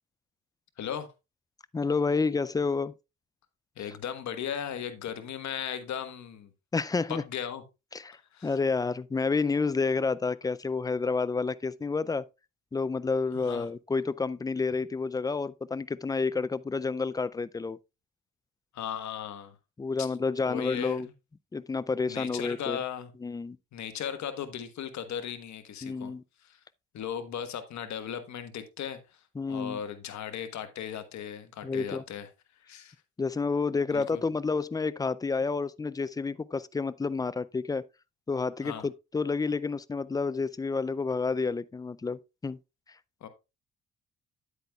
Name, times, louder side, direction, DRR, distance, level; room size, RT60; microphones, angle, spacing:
voice 1, 0.8-1.1 3.8-6.5 7.1-7.6 8.1-8.6 13.3-13.7 18.7-19.6 20.0-20.1 20.4-21.0 22.1-23.1 23.7-26.1 26.4-26.6 26.9-29.0 29.5-32.3 32.6-32.9 33.9-34.2 38.6-38.9 43.2-43.3, left 9 dB, 65° left, 1.3 m, -37 dB
voice 2, 1.7-2.9 6.7-7.2 7.9-8.2 8.4-12.2 12.7-17.8 19.8-21.1 21.5-22.8 23.2-23.6 25.8-26.2 29.4-29.8 31.6-32.0 33.2-37.8 38.3-42.6, left 4 dB, 15° left, 0.3 m, -29 dB
9.6 x 8.3 x 2.3 m
cardioid pair, 90°, 30 cm